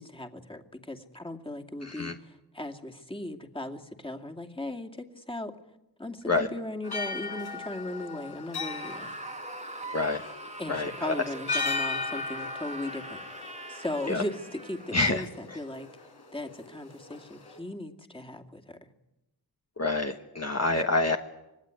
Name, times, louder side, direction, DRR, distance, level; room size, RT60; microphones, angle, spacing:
voice 1, 0.0-5.6 6.0-9.1 10.6-18.9, left 1 dB, 15° left, 3 dB, 2.4 m, -38 dB
sound 1, 6.8-17.6, left 4 dB, 70° left, 4.5 m, -37 dB
Screaming, 8.5-15.0, right 2 dB, 15° right, 1.6 m, -42 dB
voice 2, 9.9-10.2 10.7-11.1 14.1-14.2 14.9-15.2 19.8-21.2, left 3 dB, 40° left, 4 dB, 1.5 m, -27 dB
25.5 x 18.5 x 9.7 m, 0.97 s
cardioid pair, 45°, 41 cm